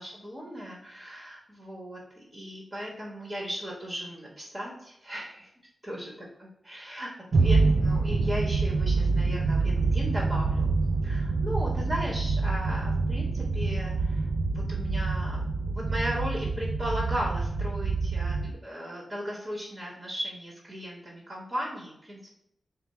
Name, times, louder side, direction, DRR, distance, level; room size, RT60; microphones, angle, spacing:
voice 1, 0.0-5.5 5.8-6.1 6.4-10.7 11.0-22.4, equal, 25° right, -4 dB, 1.2 m, -37 dB
sound 1, 7.3-18.5, right 3 dB, 70° right, 0.4 m, -26 dB
3.4 x 2.2 x 4.2 m, 0.76 s
cardioid pair, 55°, 0 cm